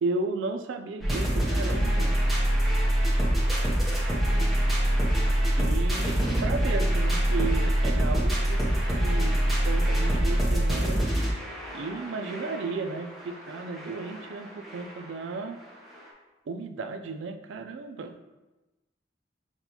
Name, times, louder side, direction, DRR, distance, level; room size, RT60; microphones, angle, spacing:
voice 1, 0.0-2.2 5.6-11.0 11.7-15.6 16.5-18.2, right 3 dB, 70° right, 6 dB, 0.3 m, -34 dB
sound 1, 1.0-15.1 15.7-15.8 16.0-16.1, right 1 dB, ahead, 0.7 m, -25 dB
5.9 x 2.2 x 2.7 m, 1.1 s
head